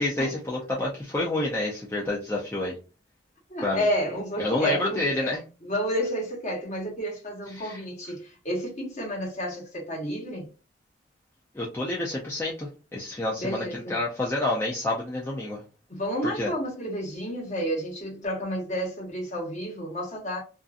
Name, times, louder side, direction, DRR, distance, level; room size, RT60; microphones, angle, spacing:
voice 1, 0.0-2.7 3.6-3.9 4.4-5.4 7.5-7.8 11.5-15.6 16.2-16.5, left 2 dB, 15° left, 0.4 m, -28 dB
voice 2, 3.5-5.3 5.6-10.5 13.4-14.0 15.9-20.4, equal, 40° left, 1.1 m, -31 dB
2.5 x 2.5 x 2.4 m
head